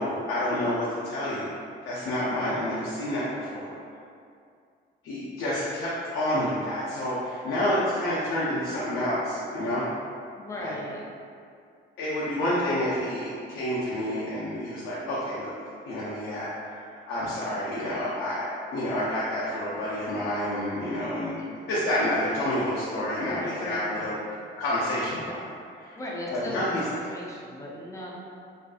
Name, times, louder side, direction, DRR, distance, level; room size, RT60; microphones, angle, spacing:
voice 1, 0.0-1.5 1.8-3.7 5.0-9.9 10.6-10.7 12.0-15.5 15.9-21.3 21.7-24.1 24.6-25.4 25.7-26.0 26.3-26.8, left 1 dB, 85° left, -9 dB, 0.5 m, -29 dB
voice 2, 10.3-11.0 21.4-21.7 23.2-24.2 25.9-28.1, left 1 dB, 15° left, -5 dB, 0.6 m, -37 dB
2.5 x 2.3 x 2.3 m, 2.4 s
cardioid pair, 90°, 20 cm